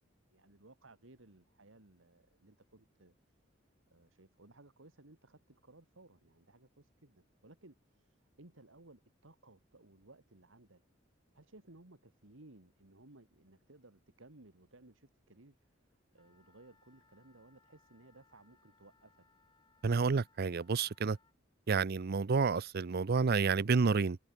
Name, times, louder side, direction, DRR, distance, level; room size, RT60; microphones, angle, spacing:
voice 1, 0.3-3.4 3.9-10.8 11.3-15.7 16.1-19.2, right 2 dB, 85° right, 2.3 m, -60 dB
Wind instrument woodwind instrument, 16.1-21.3, left 4 dB, 25° left, 6.0 m, -70 dB
voice 2, 19.8-21.2 21.7-24.2, right 4 dB, 55° right, 0.5 m, -29 dB
head